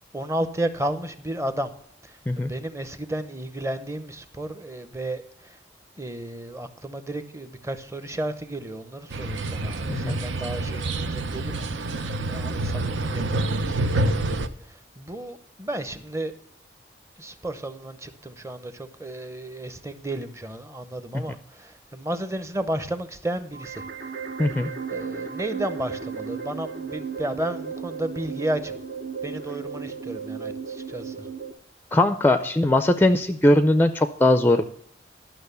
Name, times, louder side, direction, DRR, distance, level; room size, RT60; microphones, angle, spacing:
voice 1, 0.1-1.7 2.0-5.6 6.0-16.3 17.2-23.8 24.6-28.7 29.2-31.3, right 1 dB, 15° right, 11 dB, 0.7 m, -33 dB
sound 1, 9.1-14.5, right 2 dB, 90° right, 0.8 m, -27 dB
sound 2, 23.5-31.5, right 5 dB, 55° right, 0.7 m, -35 dB
voice 2, 24.4-24.7 31.9-34.7, left 1 dB, 10° left, 10 dB, 0.4 m, -20 dB
12.0 x 6.2 x 6.7 m, 0.63 s
head